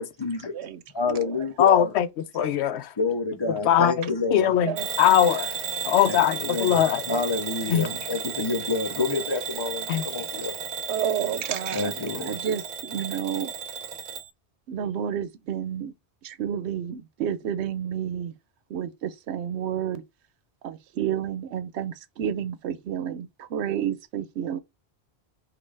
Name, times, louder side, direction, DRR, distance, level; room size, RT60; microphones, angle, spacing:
voice 1, 0.0-0.5 0.9-1.9 3.0-4.5 6.1-6.7 7.1-10.5 11.7-12.4, left 3 dB, 35° left, 0.5 m, -28 dB
voice 2, 1.1-1.5 4.6-4.9 5.2-5.4 10.9-13.5 14.7-15.9 16.2-18.3 18.7-20.0 20.6-24.6, right 9 dB, 85° right, 0.9 m, -30 dB
voice 3, 1.6-2.1 2.3-2.9 3.6-5.5 5.9-7.0 7.7-7.9 9.9-10.0, left 10 dB, 90° left, 0.9 m, -21 dB
Bell / Alarm, 4.8-14.3, right 6 dB, 50° right, 0.6 m, -34 dB
5.2 x 2.5 x 3.3 m
omnidirectional pair, 1.1 m